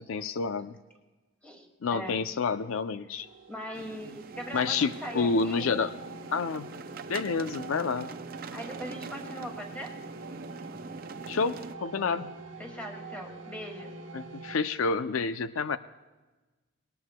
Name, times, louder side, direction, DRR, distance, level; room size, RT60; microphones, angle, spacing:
voice 1, 0.1-0.7 1.8-3.3 4.5-5.9 6.3-6.7 7.1-8.1 11.3-12.3 14.1-15.8, left 4 dB, 85° left, 11 dB, 0.5 m, -29 dB
sound 1, 3.2-14.6, right 3 dB, 70° right, 1.1 m, -45 dB
voice 2, 3.5-5.7 8.5-9.9 12.6-13.9, equal, 5° left, 0 dB, 2.1 m, -40 dB
sound 2, 3.7-11.8, right 4 dB, 45° right, 0.5 m, -44 dB
20.5 x 19.0 x 2.2 m, 1.2 s
head